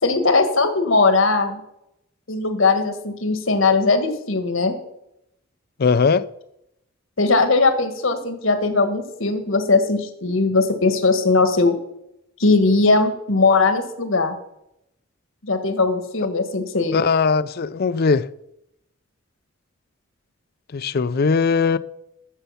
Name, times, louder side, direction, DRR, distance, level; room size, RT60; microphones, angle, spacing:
voice 1, 0.0-1.6 2.3-4.7 7.2-11.8 12.4-14.4 15.4-17.0, left 3 dB, 70° left, 1.5 m, -19 dB
voice 2, 5.8-6.2 16.9-18.3 20.7-21.8, left 5 dB, 50° left, 0.4 m, -19 dB
14.0 x 6.7 x 5.6 m
head